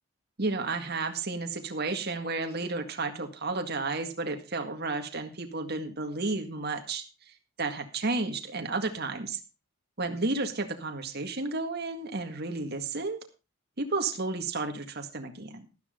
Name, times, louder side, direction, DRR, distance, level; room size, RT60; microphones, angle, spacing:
voice 1, 0.4-9.4 10.0-13.2 13.8-15.7, right 3 dB, 50° right, 5 dB, 1.9 m, -32 dB
13.0 x 12.0 x 3.8 m, 0.31 s
head